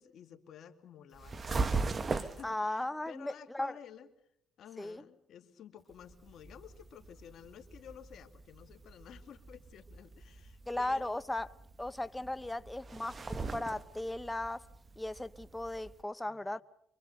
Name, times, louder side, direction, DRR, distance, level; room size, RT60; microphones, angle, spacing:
voice 1, 0.0-1.9 2.2-4.1 4.6-11.1 12.2-12.3 16.2-16.6, left 9 dB, 70° left, 2.3 m, -53 dB
sound 1, 1.1-2.5 5.9-16.0, right 4 dB, 35° right, 1.3 m, -40 dB
voice 2, 2.4-3.7 4.8-5.0 10.7-11.5 11.8-14.7 15.0-16.6, left 1 dB, 10° left, 0.9 m, -37 dB
26.0 x 24.0 x 6.6 m
cardioid pair, 90°, 0 cm